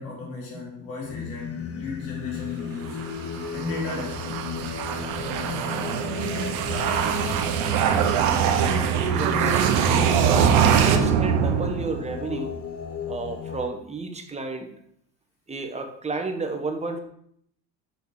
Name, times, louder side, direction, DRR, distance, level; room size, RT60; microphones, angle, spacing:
voice 1, 0.0-3.0 3.5-4.5, left 3 dB, 85° left, -3 dB, 3.7 m, -35 dB
Singing, 1.0-13.7, left 8 dB, 45° left, 1.2 m, -34 dB
sound 1, 2.9-12.2, right 8 dB, 80° right, 1.1 m, -23 dB
voice 2, 8.7-9.6 10.2-12.6 13.1-14.7 15.5-17.0, right 3 dB, 20° right, 5 dB, 1.5 m, -32 dB
6.5 x 5.2 x 6.6 m, 0.68 s
supercardioid pair, 100°, 34 cm